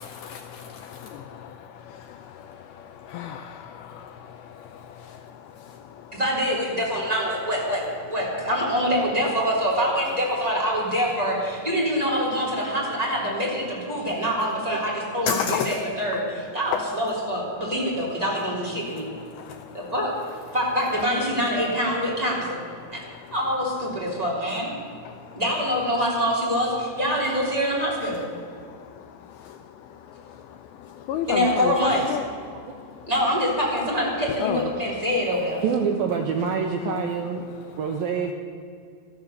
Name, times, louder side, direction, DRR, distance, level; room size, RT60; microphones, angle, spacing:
voice 1, 0.0-1.5 2.0-6.2 15.3-15.8 16.1-16.3 16.7-16.9 18.8-19.9 21.0-21.1 22.8-23.4 24.1-24.2 24.8-25.4 28.1-28.3 28.6-33.1 34.3-34.7 36.8-37.2 37.7-37.8 38.2-38.3, left 8 dB, 85° left, 8 dB, 2.2 m, -34 dB
voice 2, 6.1-19.1 19.7-20.1 20.5-22.6 22.9-23.0 23.3-24.7 25.3-28.2 31.3-32.0 33.1-35.6, equal, 10° right, -4 dB, 2.7 m, -25 dB
voice 3, 35.6-37.4 37.8-38.3, right 6 dB, 80° right, 4 dB, 2.2 m, -26 dB
14.0 x 13.0 x 6.6 m, 2.3 s
omnidirectional pair, 5.0 m